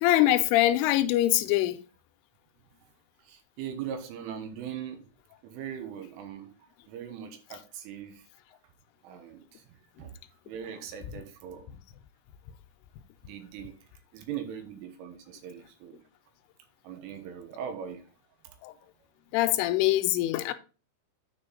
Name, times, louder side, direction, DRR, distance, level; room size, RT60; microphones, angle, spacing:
voice 1, 0.0-1.8 18.6-18.7 19.3-20.5, left 14 dB, 85° left, 3.2 m, -23 dB
voice 2, 3.2-5.1 5.4-8.3 9.0-10.2 10.5-11.7 13.2-13.8 14.1-16.0 16.8-18.0 18.4-18.6, right 8 dB, 90° right, 3.7 m, -40 dB
9.6 x 5.0 x 3.8 m
omnidirectional pair, 5.6 m